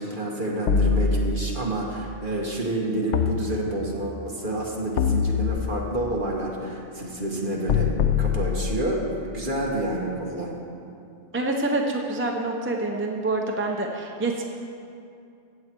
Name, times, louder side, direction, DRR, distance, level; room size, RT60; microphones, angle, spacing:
voice 1, 0.0-7.9 8.2-10.5, right 1 dB, 45° right, -2 dB, 1.7 m, -28 dB
sound 1, 0.7-1.7 3.1-4.1 5.0-6.0 7.7-9.1, left 6 dB, 75° left, 0.9 m, -24 dB
voice 2, 11.3-14.4, right 2 dB, 15° right, 1 dB, 0.6 m, -26 dB
15.5 x 7.9 x 4.5 m, 2.5 s
omnidirectional pair, 1.2 m